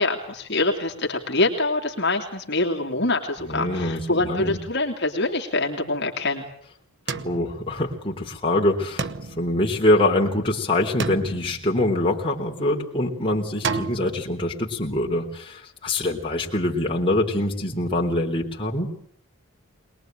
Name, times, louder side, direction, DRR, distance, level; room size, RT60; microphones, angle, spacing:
voice 1, 0.0-6.5, left 2 dB, 50° left, 1 dB, 2.9 m, -25 dB
voice 2, 3.4-4.6 7.2-9.1 9.4-18.9, left 1 dB, 25° left, -1 dB, 3.6 m, -24 dB
sound 1, 7.1-8.3 9.0-10.4 11.0-12.4 13.6-14.2, right 4 dB, 55° right, 1.1 m, -32 dB
23.0 x 21.0 x 9.1 m, 0.63 s
head